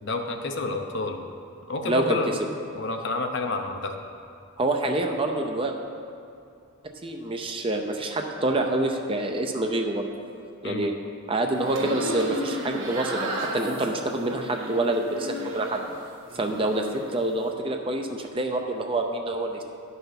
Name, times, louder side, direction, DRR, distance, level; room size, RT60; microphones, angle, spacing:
voice 1, 0.0-1.2 1.7-2.3 2.7-4.0 10.6-10.9, left 3 dB, 55° left, 4 dB, 0.7 m, -29 dB
voice 2, 1.8-2.2 4.6-5.7 7.0-10.1 10.6-10.9 11.3-15.8 16.3-19.6, right 2 dB, 25° right, 3 dB, 0.6 m, -27 dB
sound 1, 11.5-16.0 16.3-17.1, equal, 60° right, 1.5 m, -33 dB
10.5 x 5.6 x 5.8 m, 2.5 s
head